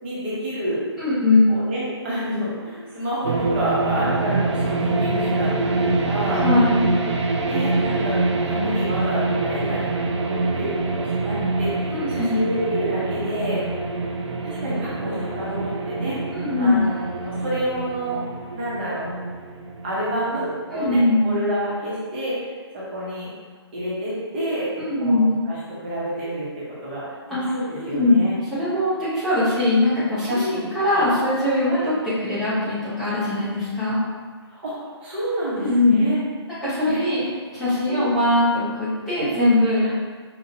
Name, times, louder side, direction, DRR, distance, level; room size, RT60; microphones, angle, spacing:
voice 1, 0.0-0.8 1.5-6.4 7.4-13.6 14.4-16.2 16.6-18.2 18.5-19.1 19.8-22.3 22.7-23.3 23.7-24.7 25.0-26.5 26.8-27.0 27.5-28.3 30.3-30.7 31.7-31.9 34.5-36.2 36.9-37.3 37.9-38.1 39.8-39.9, right 1 dB, 25° right, -8 dB, 1.0 m, -28 dB
voice 2, 1.0-1.6 6.3-6.8 11.9-12.4 16.3-16.8 20.7-21.4 24.8-25.3 27.3-27.4 27.8-28.2 28.5-31.9 32.2-34.0 35.6-36.0 36.6-37.3 37.5-39.9, left 2 dB, ahead, -16 dB, 0.8 m, -21 dB
sound 1, 3.2-20.9, right 2 dB, 90° right, 0.5 m, -25 dB
5.5 x 2.4 x 2.8 m, 1.5 s
hypercardioid pair, 170°, 14 cm